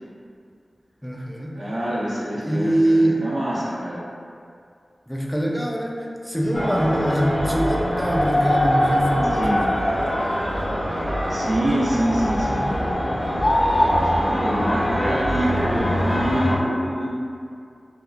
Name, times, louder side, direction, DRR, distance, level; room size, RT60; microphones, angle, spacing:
voice 1, 1.0-1.5 2.4-3.2 5.1-9.9, right 1 dB, 5° left, -2 dB, 0.3 m, -23 dB
voice 2, 1.6-4.0 5.4-5.5 6.5-6.7 9.3-9.6 11.0-13.0 14.0-17.1, equal, 65° right, -9 dB, 0.8 m, -26 dB
sound 1, 6.5-16.5, equal, 50° left, 0.6 m, -22 dB
2.9 x 2.4 x 2.3 m, 2.3 s
wide cardioid pair, 85°, 0 cm